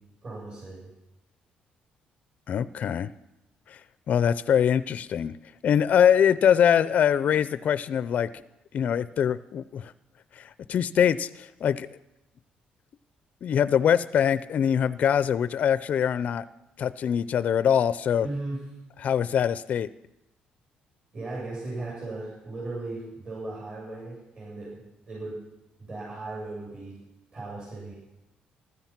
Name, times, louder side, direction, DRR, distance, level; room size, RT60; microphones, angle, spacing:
voice 1, 0.2-0.9 18.2-18.6 21.1-25.4 25.8-27.0 27.3-27.9, right 2 dB, 40° right, -5 dB, 7.6 m, -37 dB
voice 2, 2.5-3.1 3.7-3.8 4.1-5.4 5.6-8.3 8.7-9.9 10.3-11.9 13.4-16.4 16.8-18.3 19.0-19.9, left 8 dB, 55° left, 16 dB, 0.4 m, -23 dB
15.0 x 12.5 x 5.9 m, 0.95 s
cardioid pair, 120°, 3 cm